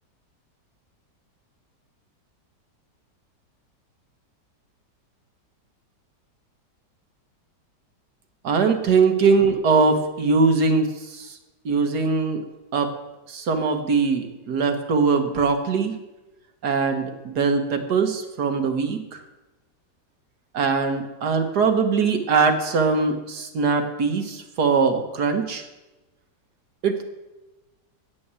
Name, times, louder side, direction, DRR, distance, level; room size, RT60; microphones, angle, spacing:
voice 1, 8.4-11.4 11.7-12.4 12.7-12.9 13.3-15.9 16.6-19.2 20.5-25.7 26.8-27.0, right 4 dB, 70° right, 6 dB, 1.7 m, -21 dB
8.8 x 7.9 x 8.2 m, 1.1 s
omnidirectional pair, 1.8 m